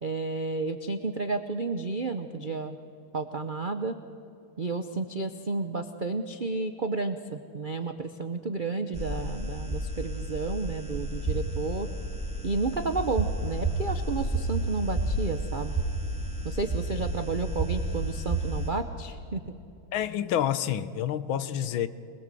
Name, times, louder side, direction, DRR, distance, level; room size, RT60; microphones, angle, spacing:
voice 1, 0.0-2.8 3.1-4.0 4.6-11.9 12.4-15.8 16.4-19.5, right 3 dB, 70° right, 8 dB, 0.4 m, -31 dB
sound 1, 8.9-18.7, right 2 dB, 5° right, 4.4 m, -31 dB
voice 2, 19.9-21.9, left 10 dB, 75° left, 14 dB, 1.6 m, -28 dB
25.0 x 20.5 x 7.7 m, 2.6 s
omnidirectional pair, 2.2 m